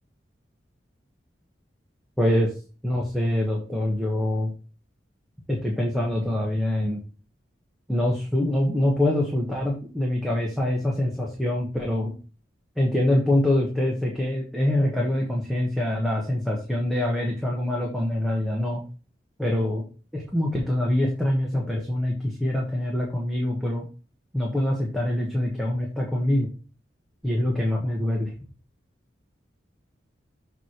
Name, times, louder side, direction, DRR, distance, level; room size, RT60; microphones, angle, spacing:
voice 1, 2.2-2.5 2.8-4.5 5.5-7.0 7.9-12.1 12.8-18.8 19.4-19.8 20.1-23.8 24.3-26.5 27.2-28.3, left 1 dB, ahead, -3 dB, 1.3 m, -24 dB
7.1 x 3.4 x 6.0 m, 0.36 s
head